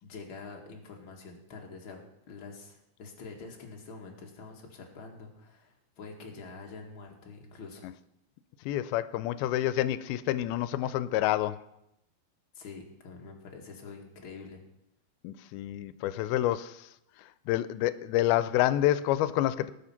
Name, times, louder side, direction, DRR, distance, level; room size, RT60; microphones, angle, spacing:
voice 1, 0.0-2.0 2.3-7.8 12.5-14.6, left 4 dB, 40° left, 2.1 m, -46 dB
voice 2, 8.7-11.6 15.2-16.8 17.5-19.7, left 13 dB, 90° left, 2.5 m, -28 dB
18.5 x 7.0 x 5.8 m
omnidirectional pair, 4.3 m